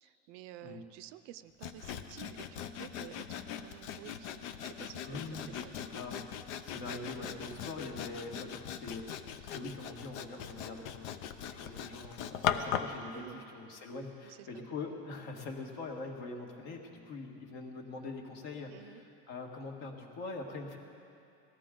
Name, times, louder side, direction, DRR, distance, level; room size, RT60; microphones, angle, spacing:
voice 1, 0.0-4.3 4.6-6.0 7.5-7.7 13.1-13.5 14.2-14.6 18.7-19.0, right 13 dB, 55° right, 13 dB, 0.5 m, -51 dB
Sawing, 1.6-13.0, left 9 dB, 90° left, 0.8 m, -40 dB
voice 2, 5.0-5.5 5.9-9.0 9.5-20.8, left 3 dB, 60° left, 2 dB, 1.8 m, -43 dB
18.5 x 14.5 x 3.8 m, 2.5 s
cardioid pair, 160°, 33 cm